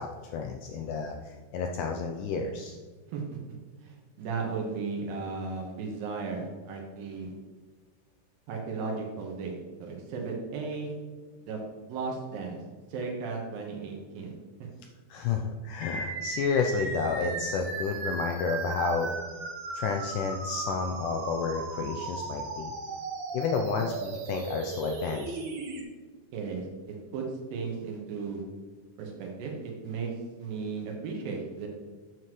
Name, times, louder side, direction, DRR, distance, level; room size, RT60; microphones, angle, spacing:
voice 1, 0.0-2.8 15.1-19.2 19.7-22.7 23.3-25.4, left 5 dB, 80° left, 3 dB, 1.9 m, -31 dB
voice 2, 3.8-7.3 8.5-9.5 9.8-10.9 11.4-11.6 11.9-12.6 12.9-14.3 14.6-14.7 26.3-27.2 27.5-28.4 29.0-31.7, right 4 dB, 85° right, 0 dB, 2.9 m, -35 dB
sound 1, 15.8-25.8, right 3 dB, 65° right, 2.5 m, -36 dB
9.3 x 7.7 x 3.1 m, 1.4 s
omnidirectional pair, 4.0 m